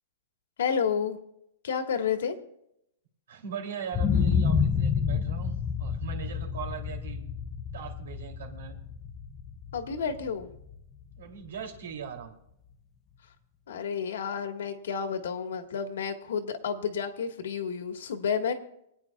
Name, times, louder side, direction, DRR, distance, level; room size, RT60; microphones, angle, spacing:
voice 1, 0.6-1.2 1.6-2.4 9.7-10.5 13.7-18.5, left 6 dB, 75° left, 6 dB, 1.6 m, -30 dB
voice 2, 3.3-7.2 7.7-8.8 11.2-12.3, right 7 dB, 80° right, 3 dB, 3.0 m, -39 dB
sound 1, 3.9-11.8 12.2-12.3, left 6 dB, 15° left, 0.5 m, -29 dB
28.0 x 9.5 x 2.4 m, 0.78 s
supercardioid pair, 175°, 0 cm